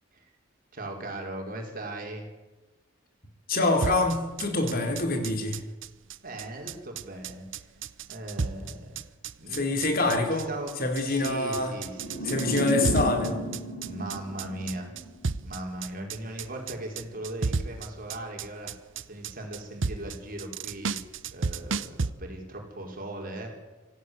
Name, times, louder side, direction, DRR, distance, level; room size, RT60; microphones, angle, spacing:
voice 1, 0.7-2.3 6.2-7.6 8.1-9.0 9.4-9.9 10.3-10.7 11.0-12.3 13.9-14.9 15.4-18.7 19.0-21.0 21.3-23.5, right 1 dB, 45° right, 1 dB, 5.5 m, -38 dB
voice 2, 3.5-5.6 9.5-10.5 10.8-11.7 12.2-13.4, left 2 dB, 50° left, 5 dB, 3.6 m, -26 dB
sound 1, 3.8-22.1, right 4 dB, 75° right, 0.8 m, -33 dB
sound 2, 12.0-15.1, equal, 75° left, 5.3 m, -32 dB
25.5 x 16.0 x 8.2 m, 1.1 s
head